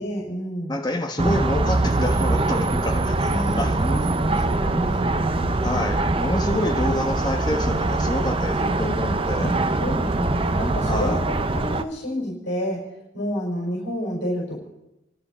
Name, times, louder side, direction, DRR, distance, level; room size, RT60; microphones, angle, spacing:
voice 1, 0.0-0.8 3.2-5.9 9.3-12.9 13.1-14.6, equal, 70° left, -4 dB, 5.5 m, -30 dB
voice 2, 0.7-3.3 3.6-3.8 5.6-9.6 10.9-11.2, left 1 dB, 20° left, 4 dB, 1.3 m, -27 dB
sound 1, 1.2-11.8, right 2 dB, 30° right, 0.6 m, -23 dB
29.0 x 11.0 x 4.4 m, 0.91 s
head